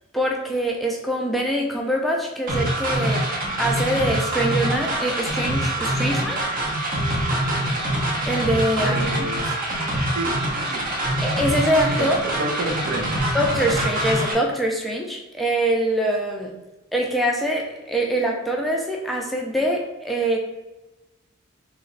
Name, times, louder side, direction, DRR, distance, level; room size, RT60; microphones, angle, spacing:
voice 1, 0.1-3.2 3.6-6.5 8.3-9.0 11.2-12.2 13.3-16.5 16.9-20.4, right 1 dB, ahead, -1 dB, 0.4 m, -24 dB
sound 1, 2.5-14.3, right 1 dB, 40° right, 0.8 m, -24 dB
voice 2, 8.8-9.5 10.1-10.8 11.9-13.2, right 1 dB, 70° right, 2 dB, 0.7 m, -30 dB
3.3 x 3.0 x 3.9 m, 1.1 s
head